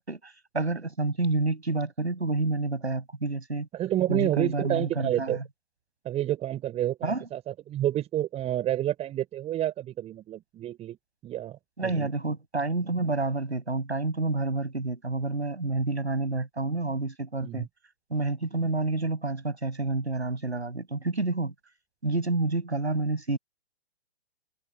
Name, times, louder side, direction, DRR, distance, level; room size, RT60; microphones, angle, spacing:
voice 1, 0.0-3.7 4.1-5.4 7.0-7.2 11.8-17.7 18.1-21.5 22.0-23.4, right 3 dB, 85° right, 7.2 m, -29 dB
voice 2, 3.7-5.4 6.0-11.0 11.2-12.1 17.4-17.7, right 12 dB, 20° right, 6.2 m, -29 dB
figure-of-eight pair, 125°, 32 cm